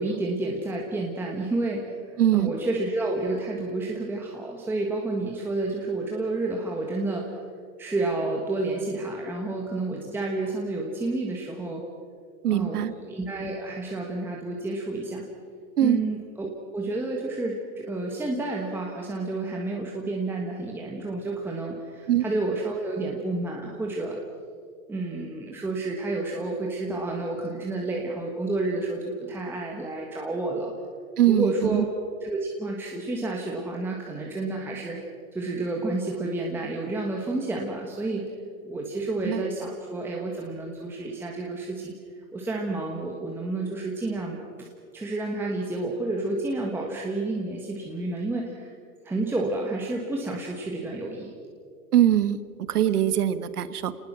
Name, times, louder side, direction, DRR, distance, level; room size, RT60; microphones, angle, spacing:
voice 1, 0.0-7.3 7.8-11.8 12.5-15.2 15.8-24.2 24.9-30.7 31.3-31.9 32.2-35.0 35.3-38.3 38.6-41.9 42.3-44.7 44.9-48.7 49.0-51.3, right 2 dB, 5° right, -1 dB, 1.4 m, -30 dB
voice 2, 2.2-2.5 12.4-12.9 15.8-16.0 22.1-22.2 31.2-31.8 39.2-39.4 51.9-52.4 52.7-53.9, right 11 dB, 80° right, 14 dB, 1.4 m, -22 dB
28.0 x 19.5 x 6.2 m, 2.3 s
hypercardioid pair, 155°, 45 cm